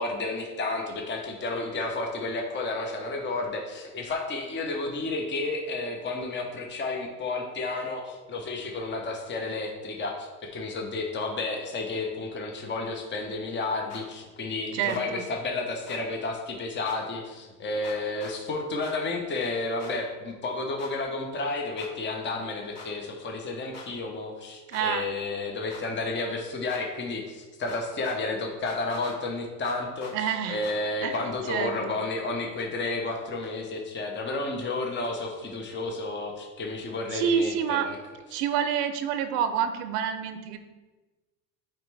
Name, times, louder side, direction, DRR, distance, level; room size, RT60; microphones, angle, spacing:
voice 1, 0.0-30.2 30.5-38.0, left 3 dB, 25° left, 2 dB, 0.9 m, -31 dB
sound 1, 13.9-14.0 14.9-15.0 15.9-16.0 16.8-17.0 17.8-18.3 18.8-19.0 19.8-19.9 20.8-20.9 21.8-21.9 22.7-22.9 23.7-23.9 24.7-24.9 25.7-25.8 26.7-26.8 27.7-28.2 28.7-29.2 29.6-30.1 30.6-30.8, left 3 dB, 75° left, 2.0 m, -44 dB
voice 2, 14.7-15.2 24.7-25.1 30.1-30.6 31.0-32.0 37.1-37.9 38.3-40.6, right 8 dB, 85° right, 9 dB, 0.7 m, -28 dB
8.8 x 3.2 x 3.4 m, 1.2 s
supercardioid pair, 95°, 47 cm